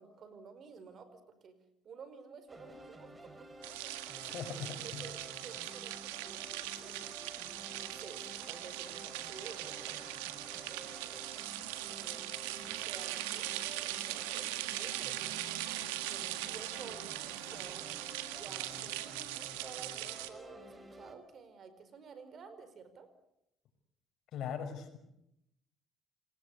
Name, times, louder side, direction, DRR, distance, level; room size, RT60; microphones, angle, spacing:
voice 1, 0.0-1.6 1.8-3.1 3.8-7.2 7.7-10.2 10.7-11.4 11.9-15.3 16.0-17.9 18.4-23.1, right 6 dB, 55° right, 12 dB, 4.7 m, -53 dB
sound 1, 2.5-21.1, right 1 dB, 25° right, 5.4 m, -52 dB
sound 2, 3.6-20.3, right 15 dB, 90° right, 1.8 m, -40 dB
voice 2, 4.2-5.0 24.3-25.0, left 7 dB, 65° left, 7 dB, 5.6 m, -40 dB
28.0 x 19.0 x 8.4 m, 0.82 s
hypercardioid pair, 60°, 0 cm